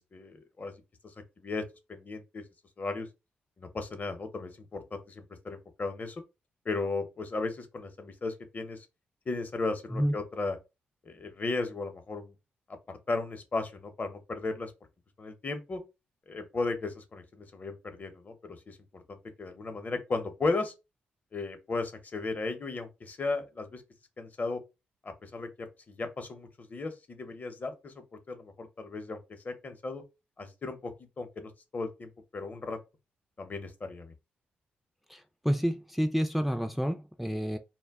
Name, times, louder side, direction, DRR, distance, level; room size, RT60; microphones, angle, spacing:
voice 1, 0.1-0.7 1.4-1.6 1.9-2.4 2.8-3.1 3.6-6.2 6.6-8.8 9.3-10.6 11.0-12.3 12.9-14.7 15.2-15.8 16.3-20.7 21.3-23.8 24.2-24.6 25.0-29.2 29.4-30.0 30.4-30.9 31.2-32.8 33.4-34.1, left 3 dB, 40° left, 0.7 m, -35 dB
voice 2, 35.1-37.6, equal, ahead, 0.4 m, -29 dB
2.2 x 2.1 x 3.4 m
supercardioid pair, 55°, 4 cm